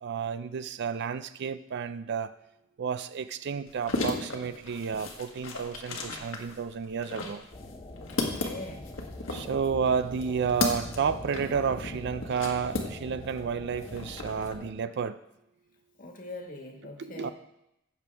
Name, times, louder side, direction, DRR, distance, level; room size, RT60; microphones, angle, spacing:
voice 1, 0.0-2.3 2.8-7.4 9.3-15.2 17.0-17.3, right 6 dB, 60° right, 13 dB, 0.4 m, -31 dB
sound 1, 3.7-13.4 13.7-14.5, left 3 dB, 75° left, 1.5 m, -35 dB
sound 2, 7.5-14.7, left 1 dB, 25° left, 0.8 m, -43 dB
voice 2, 8.1-8.9 16.0-17.3, left 2 dB, 45° left, 2 dB, 1.6 m, -42 dB
15.0 x 6.9 x 3.4 m, 0.86 s
head